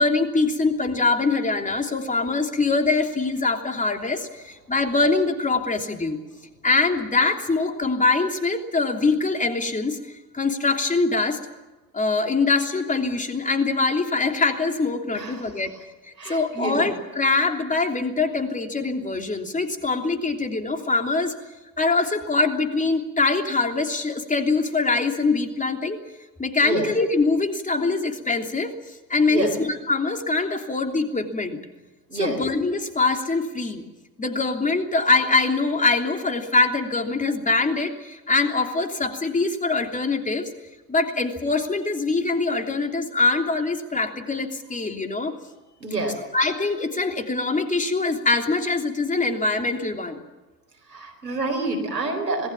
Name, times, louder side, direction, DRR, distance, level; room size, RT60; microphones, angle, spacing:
voice 1, 0.0-6.2 6.6-10.0 10.3-11.4 11.9-15.7 16.0-21.3 21.8-26.0 26.4-31.6 32.1-33.8 34.2-40.5 40.9-45.3 46.3-50.2, left 3 dB, 15° left, 5 dB, 3.1 m, -23 dB
voice 2, 15.1-15.5 16.2-16.9 26.6-26.9 29.3-29.5 32.1-32.4 45.8-46.2 50.9-52.5, right 2 dB, 90° right, 2 dB, 4.4 m, -27 dB
26.5 x 19.5 x 7.3 m, 1.1 s
figure-of-eight pair, 60°, 48 cm